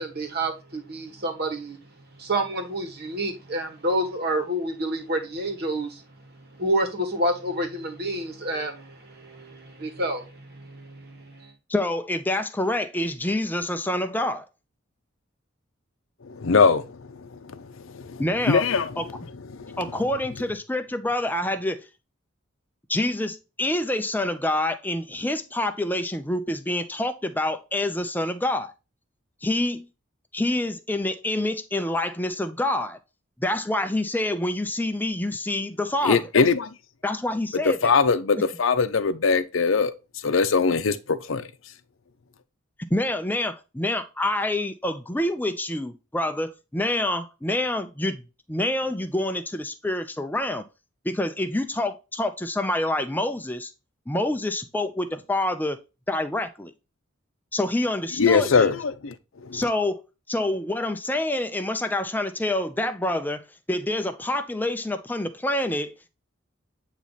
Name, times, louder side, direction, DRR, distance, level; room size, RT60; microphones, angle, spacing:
voice 1, 0.0-1.8 2.2-6.0 6.3-11.5, right 1 dB, 50° right, 1.6 m, -29 dB
voice 2, 11.7-14.4 18.2-18.6 19.0-19.1 19.8-21.8 22.9-28.7 29.4-29.9 30.3-33.0 33.4-36.2 37.0-37.9 42.9-48.2 48.5-50.6 51.0-53.7 54.1-55.8 56.1-56.7 57.5-58.7 59.5-60.0 60.3-66.1, left 1 dB, 10° left, 0.6 m, -27 dB
voice 3, 16.3-16.9 17.2-17.6 17.9-18.2 18.5-18.9 19.5-19.8 36.0-36.7 37.8-39.9 40.2-41.5 58.2-59.1 59.4-59.6, left 5 dB, 70° left, 0.6 m, -21 dB
8.7 x 3.1 x 4.0 m
head